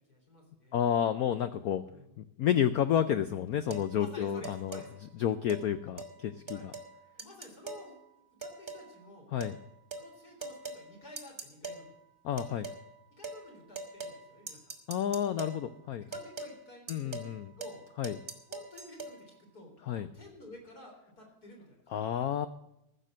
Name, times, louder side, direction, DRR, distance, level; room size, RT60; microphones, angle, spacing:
voice 1, 0.1-0.8 1.9-2.2 4.0-4.9 6.5-6.7 7.2-8.0 8.4-9.3 10.0-11.9 13.1-14.7 16.1-17.8 18.5-22.2, left 1 dB, 45° left, 0 dB, 4.3 m, -52 dB
voice 2, 0.7-1.8 2.2-4.8 5.2-6.7 9.3-9.5 12.2-12.7 14.9-16.1 16.9-17.5 18.0-18.2 19.9-20.1 21.9-22.5, left 9 dB, 80° left, 12 dB, 0.8 m, -30 dB
sound 1, 3.7-3.9 4.4-4.9 5.5-5.6 6.0-6.1 6.5-6.9 7.2-7.9 8.4-8.9 9.4-9.6 9.9-10.1 10.4-10.8 11.2-11.8 12.4-12.8 13.2-13.4 13.7-14.2 14.5-15.6 16.1-16.5 16.9-17.3 17.6-17.8 18.0-19.1, right 3 dB, 25° right, 1.5 m, -41 dB
15.0 x 6.7 x 7.5 m, 0.86 s
omnidirectional pair, 2.2 m